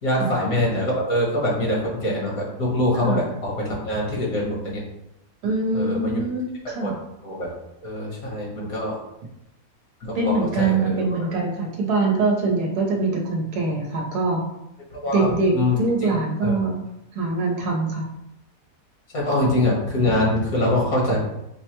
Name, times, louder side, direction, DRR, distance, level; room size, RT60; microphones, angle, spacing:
voice 1, 0.0-4.8 5.7-6.2 6.8-6.9 7.2-7.5 7.8-9.0 10.0-11.0 14.9-15.8 16.0-16.2 16.4-16.6 19.1-21.2, left 1 dB, 65° left, -4 dB, 1.8 m, -24 dB
voice 2, 5.4-6.9 10.1-14.4 15.1-16.8 17.1-18.1, right 3 dB, 85° right, 0 dB, 1.4 m, -23 dB
6.4 x 2.2 x 3.0 m, 0.86 s
omnidirectional pair, 1.6 m